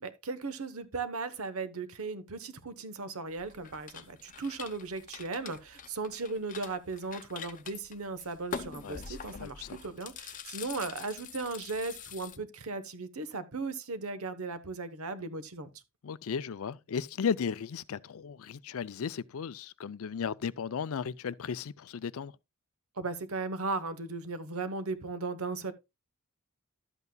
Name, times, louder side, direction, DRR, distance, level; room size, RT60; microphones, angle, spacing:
voice 1, 0.0-15.7 23.0-25.7, right 3 dB, 70° right, 1.0 m, -37 dB
sound 1, 3.4-12.4, left 6 dB, 35° left, 0.8 m, -45 dB
voice 2, 8.8-9.8 16.0-22.3, left 6 dB, 70° left, 0.4 m, -35 dB
12.0 x 8.1 x 2.2 m
head